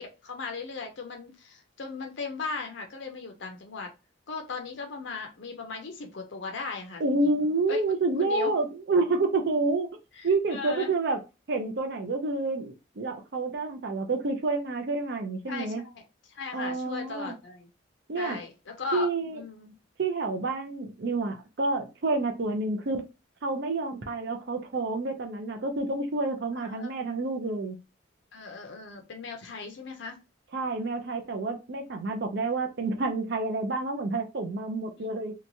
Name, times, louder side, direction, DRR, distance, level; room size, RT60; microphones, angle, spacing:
voice 1, 0.2-3.9 4.3-7.8 8.2-8.5 10.1-10.9 15.5-16.0 16.3-17.7 18.2-19.8 26.5-27.1 28.3-30.2 35.0-35.1, left 4 dB, 60° left, 4 dB, 0.5 m, -38 dB
voice 2, 7.0-9.9 10.2-11.2 11.5-15.8 16.5-17.3 18.1-18.4 18.9-19.4 20.0-23.0 23.4-27.8 30.5-35.3, right 3 dB, 55° right, 6 dB, 0.5 m, -29 dB
2.9 x 2.2 x 2.6 m, 0.27 s
head